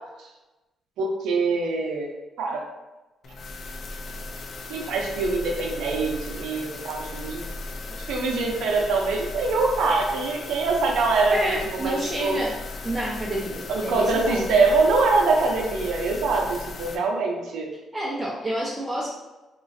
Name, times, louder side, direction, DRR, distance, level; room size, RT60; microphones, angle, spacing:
voice 1, 1.0-2.1 2.4-2.6 4.7-7.4 8.1-12.4 13.7-16.4 16.8-17.7, right 3 dB, 85° right, 0 dB, 0.5 m, -24 dB
sound 1, 3.2-17.0, left 3 dB, 55° left, 0.4 m, -37 dB
voice 2, 11.3-12.6 12.8-14.5 17.9-19.1, right 1 dB, 10° right, -5 dB, 0.5 m, -29 dB
2.9 x 2.4 x 2.6 m, 1.1 s
cardioid pair, 90°, 0 cm